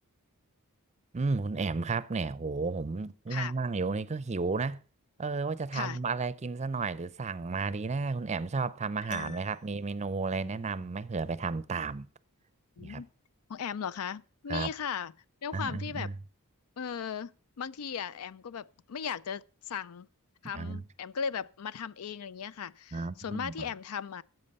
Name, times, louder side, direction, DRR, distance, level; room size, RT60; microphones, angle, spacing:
voice 1, 1.1-4.8 5.2-12.1 12.8-13.0 14.5-14.7 15.5-16.1 20.5-20.8 22.9-23.7, right 4 dB, 30° right, 0.5 m, -33 dB
voice 2, 9.1-9.4 12.8-13.1 13.5-15.1 15.4-16.1 16.8-17.3 17.6-20.1 20.4-24.2, left 7 dB, 75° left, 0.5 m, -37 dB
Piano, 9.1-9.9, left 6 dB, 35° left, 0.8 m, -48 dB
14.0 x 8.1 x 5.4 m
head